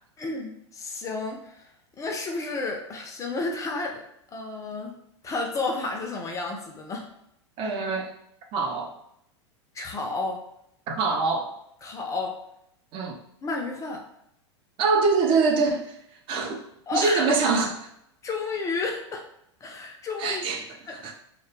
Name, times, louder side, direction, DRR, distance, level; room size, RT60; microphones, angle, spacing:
voice 1, 0.2-1.7 2.0-4.0 4.3-5.0 5.2-7.1 9.7-10.4 11.8-12.4 13.4-14.0 16.9-17.3 18.2-19.2 19.6-20.4 20.9-21.1, left 3 dB, 20° left, 2 dB, 0.4 m, -31 dB
voice 2, 7.6-8.1 8.5-8.9 10.9-11.5 12.9-13.2 14.8-16.0 16.3-16.6 16.9-17.9 20.2-21.1, right 4 dB, 35° right, 2 dB, 0.5 m, -24 dB
2.1 x 2.0 x 3.1 m, 0.75 s
hypercardioid pair, 95°, 15 cm